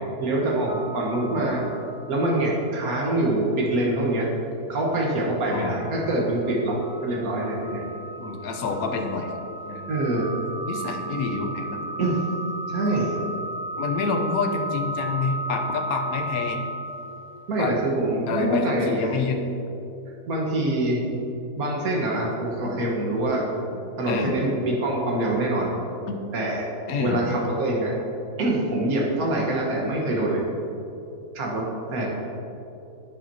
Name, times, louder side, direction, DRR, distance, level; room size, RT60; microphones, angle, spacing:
voice 1, 0.0-1.7 2.1-4.3 4.7-7.9 9.9-10.3 12.0-12.2 12.7-13.2 17.5-19.1 20.3-21.0 21.6-23.5 24.0-25.7 26.3-26.7 27.0-28.0 28.4-30.4 31.3-32.3, right 1 dB, 70° right, -3 dB, 1.9 m, -25 dB
sound 1, 0.7-2.6 3.0-3.1 5.7-17.6, right 1 dB, 25° right, 0.5 m, -35 dB
voice 2, 8.2-9.3 9.7-9.8 10.7-11.8 13.8-16.6 17.5-17.7 18.3-19.4 24.1-24.3 26.1-26.2 26.9-27.2, left 4 dB, 70° left, 4 dB, 1.3 m, -27 dB
10.0 x 9.0 x 2.9 m, 2.9 s
omnidirectional pair, 1.6 m